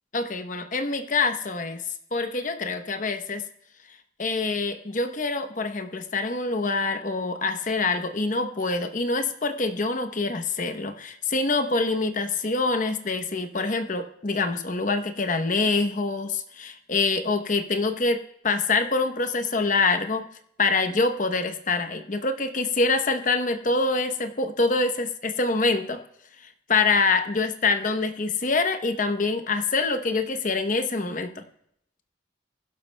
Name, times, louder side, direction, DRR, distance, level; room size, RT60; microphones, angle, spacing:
voice 1, 0.1-1.8 2.1-3.4 4.2-20.3 20.6-26.0 26.7-31.4, left 3 dB, 40° left, 7 dB, 0.8 m, -25 dB
22.5 x 12.0 x 2.2 m, 0.71 s
head